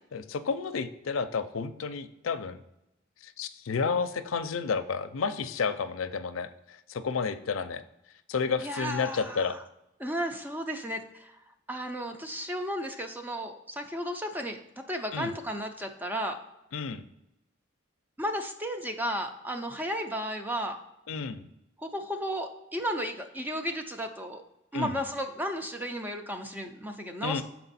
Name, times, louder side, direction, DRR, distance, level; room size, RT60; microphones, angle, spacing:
voice 1, 0.1-2.6 3.2-7.8 8.3-9.6 15.1-15.3 16.7-17.0 21.1-21.5 24.7-25.0 27.2-27.4, left 5 dB, 90° left, 11 dB, 0.5 m, -31 dB
voice 2, 8.6-9.6 10.0-11.4 11.7-14.6 14.9-16.4 18.2-20.8 21.8-24.4 24.7-27.4, equal, 10° right, 5 dB, 0.5 m, -34 dB
6.7 x 4.4 x 4.1 m, 0.88 s
head